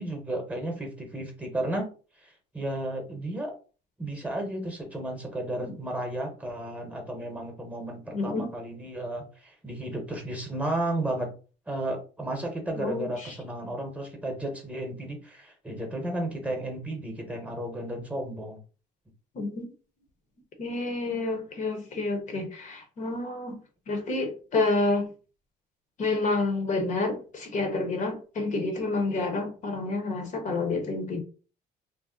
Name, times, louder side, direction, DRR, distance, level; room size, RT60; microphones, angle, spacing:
voice 1, 0.0-1.9 2.2-2.3 2.5-3.6 4.0-11.3 11.7-18.6, right 1 dB, 10° right, 0.9 m, -33 dB
voice 2, 8.1-8.5 12.7-13.4 19.3-19.7 20.6-23.6 23.9-25.1 26.0-31.2, left 3 dB, 45° left, 0.8 m, -29 dB
2.6 x 2.0 x 3.7 m
cardioid pair, 110°, 17 cm